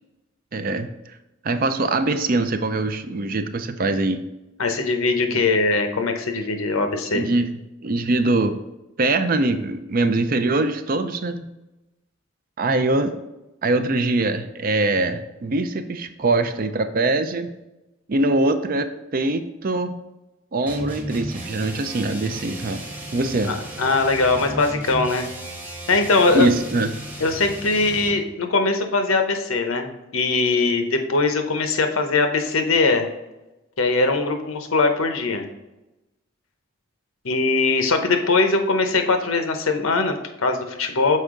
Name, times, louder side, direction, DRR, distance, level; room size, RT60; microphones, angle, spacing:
voice 1, 0.5-0.9 1.4-4.2 5.3-5.4 7.1-8.5 9.0-11.5 12.6-13.2 13.6-17.5 18.1-20.0 20.5-22.8 23.1-23.5 26.3-26.9, right 2 dB, 45° right, 9 dB, 0.5 m, -22 dB
voice 2, 4.6-7.2 23.4-25.3 25.9-26.5 27.2-33.1 33.8-35.5 37.2-41.2, left 3 dB, 80° left, 6 dB, 0.8 m, -21 dB
sound 1, 20.7-28.3, right 1 dB, 10° right, 1.0 m, -35 dB
6.5 x 4.5 x 3.7 m, 0.99 s
head